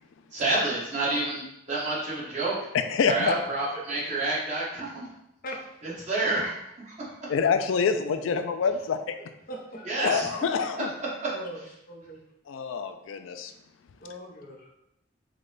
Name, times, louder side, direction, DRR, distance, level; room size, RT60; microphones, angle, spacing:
voice 1, 0.3-1.4 1.7-2.7 3.1-5.1 5.8-6.5 6.8-6.9 9.8-10.4, right 2 dB, 35° right, -7 dB, 1.3 m, -28 dB
voice 2, 2.7-3.3 7.3-9.2 10.0-10.9 12.5-13.5, left 6 dB, 90° left, 8 dB, 0.4 m, -26 dB
voice 3, 9.5-10.0 11.3-12.2 14.0-14.7, equal, 45° left, 0 dB, 0.7 m, -40 dB
4.9 x 2.2 x 3.9 m, 0.84 s
head